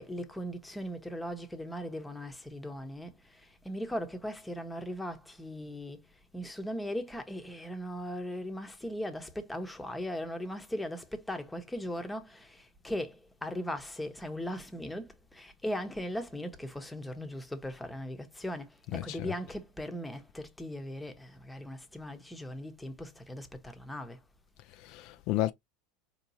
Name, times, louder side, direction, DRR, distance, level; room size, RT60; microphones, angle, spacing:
voice 1, 0.0-24.2, equal, 5° left, 0.9 m, -39 dB
voice 2, 18.9-19.3 24.8-25.5, left 15 dB, 60° left, 0.3 m, -32 dB
4.6 x 2.9 x 2.7 m
supercardioid pair, 115°, 0 cm